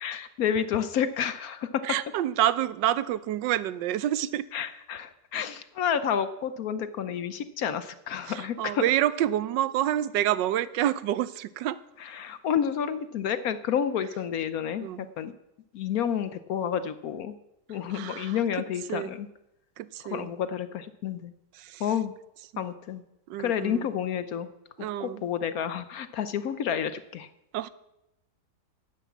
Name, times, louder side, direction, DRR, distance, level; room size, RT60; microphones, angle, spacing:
voice 1, 0.0-1.7 4.5-8.8 12.2-14.9 15.2-15.3 15.7-17.3 17.7-19.3 20.1-21.3 21.8-22.1 22.6-23.0 23.4-24.5 25.0-27.3, left 8 dB, 65° left, 12 dB, 1.0 m, -30 dB
voice 2, 1.8-4.5 8.2-11.8 14.8-15.1 17.7-19.2 19.8-20.3 21.5-22.0 22.5-22.6 23.3-23.9 24.8-25.2 27.5-27.7, right 12 dB, 85° right, 16 dB, 1.3 m, -28 dB
11.0 x 9.3 x 7.2 m, 0.89 s
omnidirectional pair, 1.9 m